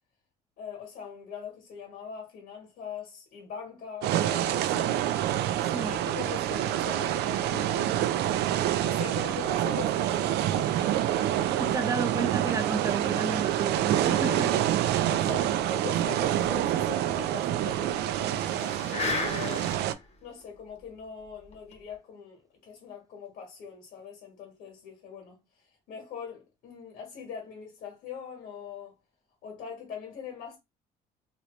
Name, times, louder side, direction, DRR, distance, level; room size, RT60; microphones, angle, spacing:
voice 1, 0.6-5.0 5.8-8.1 8.8-12.2 13.9-14.8 15.1-19.7 20.2-29.0 29.4-30.6, left 7 dB, 75° left, 1.6 m, -42 dB
sound 1, 4.0-19.9, right 12 dB, 75° right, 0.4 m, -27 dB
voice 2, 11.6-14.5, right 4 dB, 20° right, 0.6 m, -32 dB
sound 2, 16.4-16.5 16.8-16.9 17.3-17.4 18.3-20.0 20.5-20.6 21.5-21.7, left 4 dB, 40° left, 1.0 m, -34 dB
3.0 x 2.8 x 3.1 m
cardioid pair, 110°, 17 cm